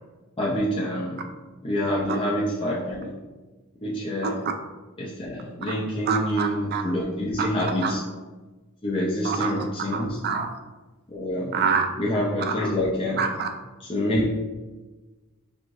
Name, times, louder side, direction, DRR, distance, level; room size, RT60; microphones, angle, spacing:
voice 1, 0.4-1.2 1.6-3.1 3.8-4.4 5.0-8.0 8.8-10.2 11.1-11.5 12.0-13.5 13.8-14.3, left 1 dB, 25° left, -6 dB, 0.6 m, -27 dB
voice 2, 6.1-6.8 7.4-7.9 9.2-9.5 9.9-10.5 11.5-11.9 12.5-12.6 13.2-13.5, right 6 dB, 45° right, 5 dB, 0.4 m, -26 dB
4.7 x 3.5 x 2.6 m, 1.2 s
head